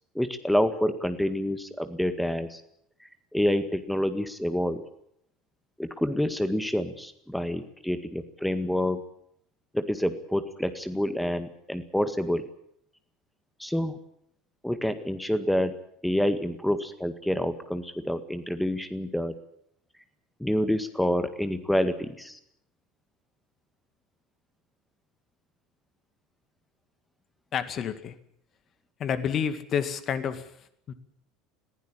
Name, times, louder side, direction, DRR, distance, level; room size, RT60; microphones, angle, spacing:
voice 1, 0.1-2.6 3.0-4.8 5.8-9.0 9.7-12.5 13.6-14.0 14.6-15.7 16.0-19.3 20.4-22.4, left 1 dB, 5° left, 10 dB, 1.8 m, -28 dB
voice 2, 27.5-28.2 29.0-30.9, left 7 dB, 40° left, 11 dB, 2.1 m, -30 dB
21.5 x 15.5 x 8.7 m, 0.73 s
figure-of-eight pair, 70°, 0 cm